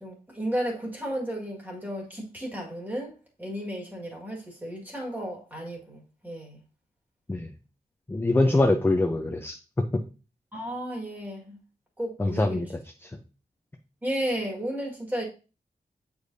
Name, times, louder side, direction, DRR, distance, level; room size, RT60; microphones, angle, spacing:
voice 1, 0.0-6.6 8.4-8.7 10.5-11.6 12.0-12.6 14.0-15.3, equal, 10° right, 1.7 m, -33 dB
voice 2, 8.1-9.6 12.2-12.7 13.0-13.1, left 2 dB, 15° left, 0.5 m, -23 dB
8.4 x 4.9 x 2.7 m
wide cardioid pair, 170°, 16 cm